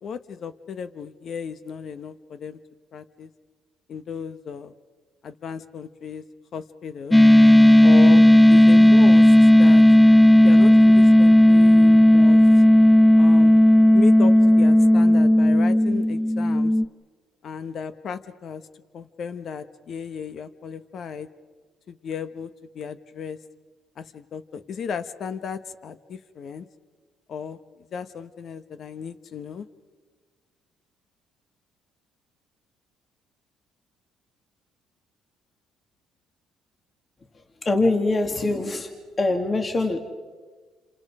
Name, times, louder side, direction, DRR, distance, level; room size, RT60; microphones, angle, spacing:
voice 1, 0.0-2.6 2.9-3.3 3.9-4.7 5.2-6.2 6.5-7.2 7.8-9.8 10.4-12.4 13.2-13.6 13.9-16.7 17.4-18.6 18.9-21.3 21.9-22.5 22.7-23.4 24.0-26.6 27.3-29.7, left 6 dB, 60° left, 12 dB, 1.3 m, -35 dB
sound 1, 7.1-16.8, left 1 dB, 10° left, 0.7 m, -13 dB
voice 2, 37.6-38.9 39.2-40.0, left 2 dB, 35° left, 4 dB, 2.7 m, -23 dB
29.0 x 27.0 x 5.0 m, 1.4 s
supercardioid pair, 70°, 0 cm